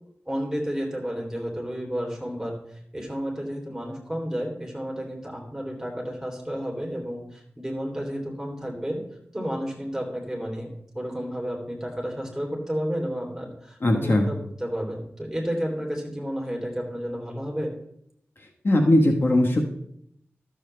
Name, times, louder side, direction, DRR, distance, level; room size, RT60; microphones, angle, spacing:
voice 1, 0.3-2.6 2.9-9.0 9.3-10.7 10.9-17.7, equal, 5° right, -2 dB, 3.2 m, -31 dB
voice 2, 13.8-14.3 18.6-19.6, left 1 dB, 55° left, 1 dB, 1.2 m, -19 dB
13.0 x 7.1 x 3.3 m, 0.73 s
wide cardioid pair, 75°, 5 cm